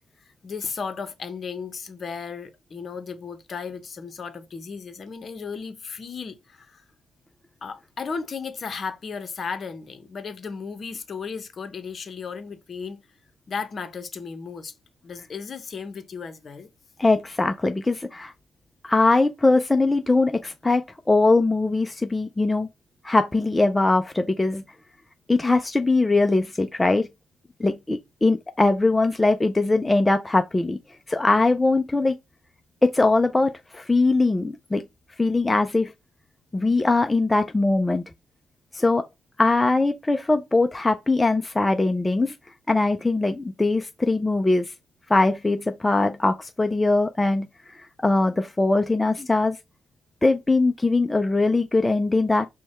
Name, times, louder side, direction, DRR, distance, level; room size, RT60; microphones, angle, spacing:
voice 1, 0.4-6.8 7.6-13.0 13.5-14.7 15.0-16.7, left 5 dB, 45° left, 0.7 m, -35 dB
voice 2, 17.0-18.3 18.8-20.8 21.1-22.7 23.0-24.6 25.3-27.1 27.6-30.8 31.1-32.1 32.8-34.8 35.2-35.9 36.5-38.0 38.7-39.0 39.4-42.3 42.7-44.7 45.1-47.5 47.7-49.6 50.2-52.5, left 2 dB, 15° left, 0.4 m, -21 dB
4.5 x 2.1 x 4.2 m
cardioid pair, 90°, 0 cm